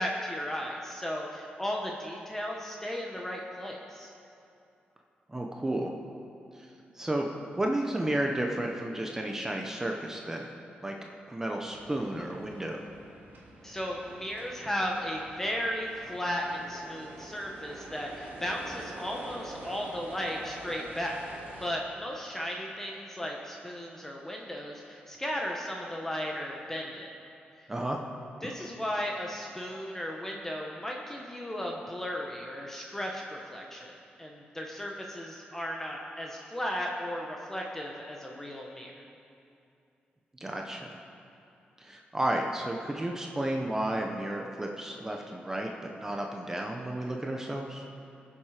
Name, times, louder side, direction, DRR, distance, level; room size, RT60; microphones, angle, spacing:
voice 1, 0.0-4.1 13.6-21.3 21.6-27.1 28.4-33.9 34.2-38.9, equal, 10° left, -1 dB, 1.1 m, -35 dB
voice 2, 5.3-5.9 6.5-6.7 7.0-7.3 7.5-10.5 10.8-10.9 11.3-12.8 27.7-28.0 40.4-41.0 41.8-45.7 46.0-47.8, right 1 dB, 15° right, 1 dB, 0.9 m, -32 dB
sound 1, 11.7-21.7, right 2 dB, 75° right, 2.7 m, -47 dB
21.5 x 7.4 x 4.9 m, 2.6 s
wide cardioid pair, 130°, 3 cm